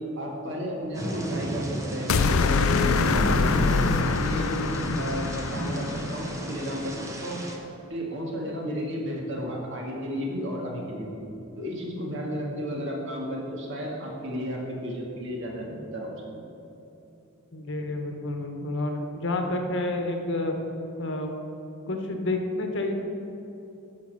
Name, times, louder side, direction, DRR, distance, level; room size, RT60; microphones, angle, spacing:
voice 1, 0.2-4.5 5.0-6.9 7.2-7.4 7.9-11.2 11.6-16.5, equal, 60° right, -1 dB, 2.0 m, -33 dB
Thunder / Rain, 0.9-7.6, right 1 dB, 15° right, 1.0 m, -32 dB
sound 1, 2.1-6.4, left 5 dB, 75° left, 0.4 m, -25 dB
voice 2, 17.5-20.5 21.0-21.4 21.9-22.9, left 2 dB, 60° left, 3 dB, 1.2 m, -29 dB
11.5 x 5.1 x 7.4 m, 2.8 s
head